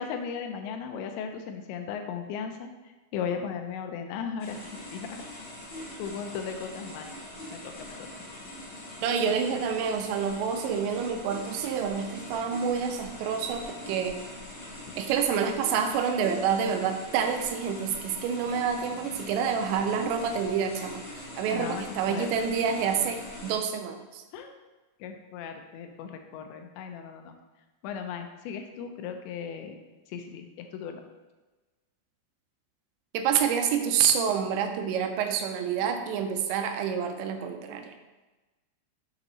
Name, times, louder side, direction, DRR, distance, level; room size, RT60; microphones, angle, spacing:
voice 1, 0.0-2.7 3.1-5.2 6.0-7.1 7.5-8.0 21.5-22.3 24.3-24.5 25.0-27.4 27.8-29.8 30.1-31.0, left 6 dB, 85° left, 5 dB, 2.9 m, -36 dB
sound 1, 4.4-23.6, left 1 dB, 45° left, 2.6 m, -43 dB
voice 2, 9.0-14.2 15.0-24.2 33.1-37.9, right 7 dB, 85° right, 6 dB, 2.8 m, -28 dB
7.2 x 5.3 x 3.1 m, 1.2 s
omnidirectional pair, 5.2 m